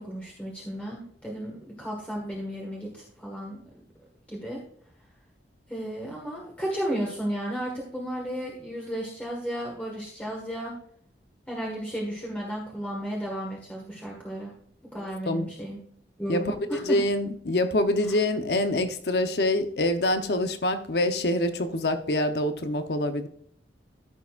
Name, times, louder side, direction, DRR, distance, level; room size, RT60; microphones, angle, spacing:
voice 1, 0.0-3.6 4.3-4.6 5.7-10.7 11.5-14.5 14.9-15.8 16.2-17.0 18.0-18.2, equal, 10° left, 1.6 m, -34 dB
voice 2, 15.0-15.5 16.3-23.3, left 1 dB, 60° left, 0.9 m, -26 dB
14.0 x 7.0 x 2.5 m
head